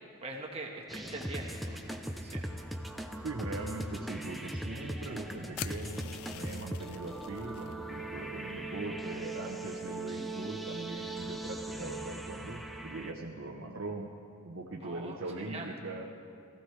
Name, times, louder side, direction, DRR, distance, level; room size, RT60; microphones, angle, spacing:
voice 1, 0.2-2.5 14.8-15.7, right 2 dB, 30° right, 0 dB, 1.5 m, -43 dB
sound 1, 0.9-13.1, right 1 dB, ahead, 0.6 m, -40 dB
voice 2, 3.2-14.1 14.4-16.1, right 2 dB, 60° right, -1 dB, 0.9 m, -41 dB
sound 2, 5.6-7.7, left 12 dB, 80° left, 0.4 m, -45 dB
19.0 x 14.5 x 3.3 m, 2.4 s
head